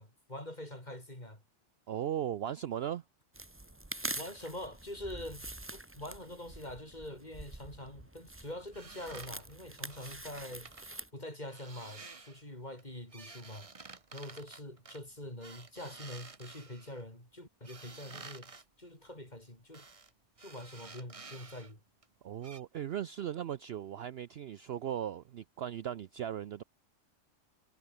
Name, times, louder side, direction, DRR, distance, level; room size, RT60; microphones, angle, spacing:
voice 1, 0.0-1.4 4.1-5.5 5.7-10.7 11.1-13.7 14.1-19.9 20.4-21.8, left 1 dB, 30° left, 6.7 m, -45 dB
voice 2, 1.9-3.0 22.2-26.6, right 10 dB, 60° right, 0.7 m, -37 dB
sound 1, 3.3-11.1, right 1 dB, 10° right, 1.2 m, -45 dB
sound 2, 8.7-11.0 11.5-12.4 12.8-17.0 17.6-18.6 19.7-20.1 20.4-21.7 22.0-22.1 22.4-22.6, right 4 dB, 25° right, 1.2 m, -51 dB
omnidirectional pair, 1.4 m